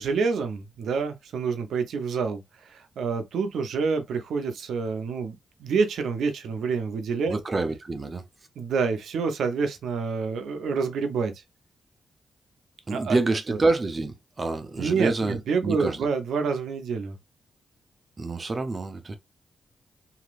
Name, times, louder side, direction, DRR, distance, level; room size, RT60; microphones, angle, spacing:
voice 1, 0.0-7.3 8.6-11.3 12.9-13.2 13.5-13.6 14.8-17.2, right 5 dB, 85° right, 0.7 m, -27 dB
voice 2, 7.3-8.2 12.9-16.1 18.2-19.2, right 3 dB, 35° right, 0.7 m, -27 dB
3.0 x 2.8 x 2.5 m
cardioid pair, 80°, 0 cm